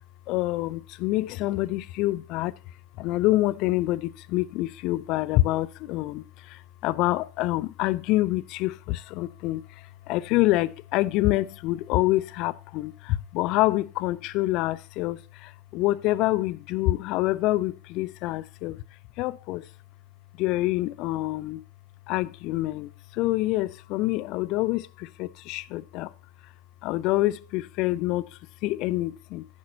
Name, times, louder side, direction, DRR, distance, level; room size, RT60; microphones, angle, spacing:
voice 1, 0.3-2.5 3.0-18.8 19.2-19.7 20.4-21.6 22.1-26.1 26.8-29.5, left 17 dB, 50° left, 0.4 m, -26 dB
11.5 x 9.5 x 2.8 m
figure-of-eight pair, 80°, 0 cm